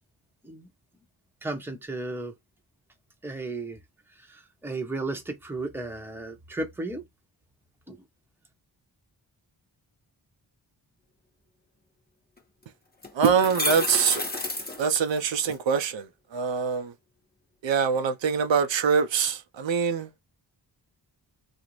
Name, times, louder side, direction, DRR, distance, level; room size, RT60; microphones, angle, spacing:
voice 1, 1.4-2.3 3.2-3.8 4.2-7.0 7.9-8.0, right 2 dB, 5° right, 0.7 m, -34 dB
sound 1, 12.4-12.5 13.0-15.5, left 2 dB, 20° left, 0.9 m, -31 dB
voice 2, 13.1-14.2 14.8-16.9 17.6-20.1, right 6 dB, 80° right, 0.5 m, -24 dB
2.4 x 2.0 x 3.0 m
cardioid pair, 50°, 44 cm